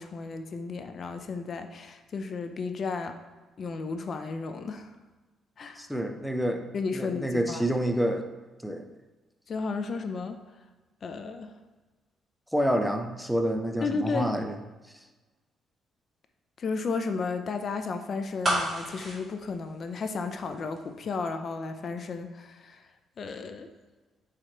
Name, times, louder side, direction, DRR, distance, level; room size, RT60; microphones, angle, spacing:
voice 1, 0.0-3.2 3.6-4.9 5.6-5.9 6.7-7.6 9.5-10.4 11.0-11.5 13.8-14.3 16.6-22.8 23.2-23.7, left 4 dB, 50° left, 7 dB, 0.6 m, -33 dB
voice 2, 5.8-6.7 6.9-8.2 8.6-8.9 12.5-14.6, equal, ahead, 5 dB, 0.6 m, -28 dB
sound 1, 18.4-20.5 20.8-20.9, right 1 dB, 20° right, 2.1 m, -30 dB
5.6 x 5.0 x 4.4 m, 1.2 s
cardioid pair, 90°, 0 cm